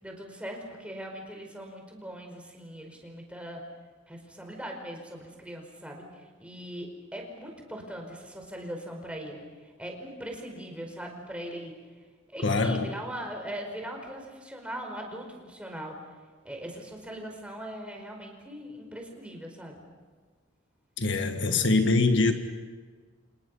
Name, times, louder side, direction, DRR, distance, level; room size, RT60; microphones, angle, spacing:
voice 1, 0.0-3.6 4.1-11.7 12.3-16.0 16.4-19.8, equal, 5° right, 2 dB, 5.0 m, -40 dB
voice 2, 12.4-12.9 21.0-22.3, left 3 dB, 65° left, 6 dB, 1.8 m, -23 dB
30.0 x 27.5 x 5.7 m, 1.5 s
head